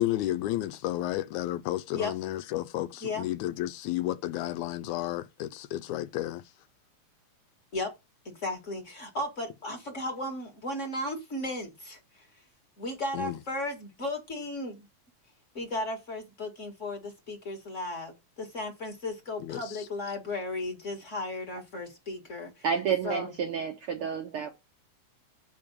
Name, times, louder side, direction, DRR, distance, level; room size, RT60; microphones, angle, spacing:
voice 1, 0.0-6.4 13.1-13.4 19.4-19.6, left 14 dB, 80° left, 1.9 m, -32 dB
voice 2, 3.0-3.3 7.7-7.9 8.2-12.2 12.8-14.8 15.5-22.6 23.0-23.3, left 2 dB, 35° left, 1.3 m, -35 dB
voice 3, 22.6-24.5, right 7 dB, 70° right, 1.4 m, -30 dB
5.5 x 5.1 x 6.6 m
omnidirectional pair, 3.5 m